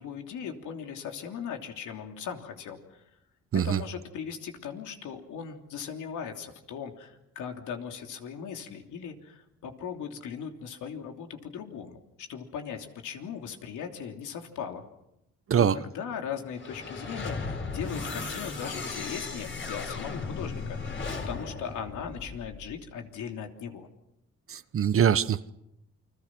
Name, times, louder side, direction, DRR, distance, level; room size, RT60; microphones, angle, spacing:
voice 1, 0.0-3.0 3.5-14.8 15.5-23.9, left 7 dB, 80° left, 3.2 m, -38 dB
sound 1, 16.5-22.8, left 4 dB, 40° left, 4.5 m, -36 dB
voice 2, 24.5-25.5, right 8 dB, 45° right, 1.0 m, -23 dB
29.0 x 22.0 x 6.1 m
cardioid pair, 90°, 30 cm